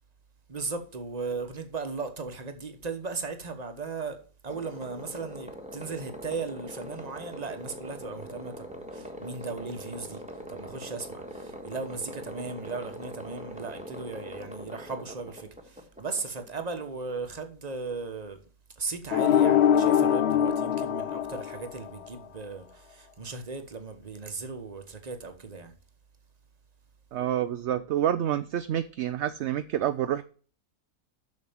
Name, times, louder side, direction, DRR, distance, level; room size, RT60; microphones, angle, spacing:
voice 1, 0.5-4.2 4.4-18.4 18.7-25.8, right 4 dB, 30° right, 1.2 m, -37 dB
sound 1, 4.5-17.1, equal, 5° right, 1.4 m, -42 dB
sound 2, 19.1-22.1, left 9 dB, 60° left, 0.8 m, -23 dB
voice 2, 27.1-30.2, right 11 dB, 65° right, 0.8 m, -28 dB
7.3 x 6.6 x 7.3 m
omnidirectional pair, 1.5 m